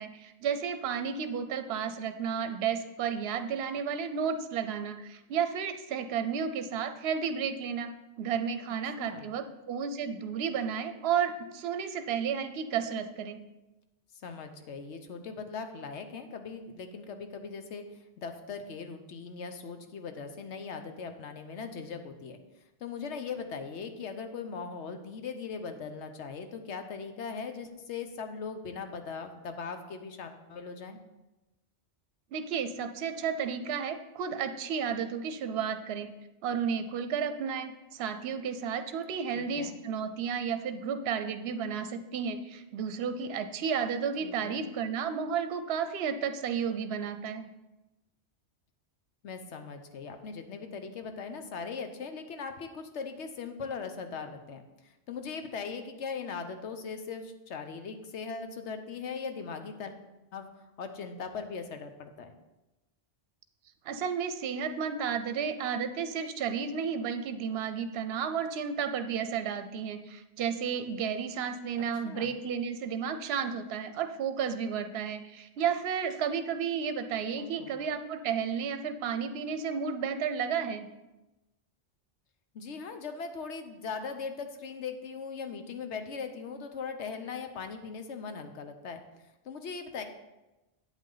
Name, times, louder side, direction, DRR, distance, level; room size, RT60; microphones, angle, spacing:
voice 1, 0.0-7.9 8.2-13.4 32.3-36.1 36.4-47.5 63.8-80.9, right 7 dB, 65° right, 9 dB, 0.8 m, -32 dB
voice 2, 8.7-9.3 14.2-17.8 18.2-22.4 22.8-31.0 39.3-39.8 44.2-44.6 49.2-59.9 60.3-60.5 60.8-62.3 71.8-72.3 77.4-77.7 82.5-89.0 89.4-90.0, left 5 dB, 75° left, 7 dB, 1.1 m, -39 dB
8.5 x 8.3 x 3.9 m, 1.0 s
omnidirectional pair, 1.2 m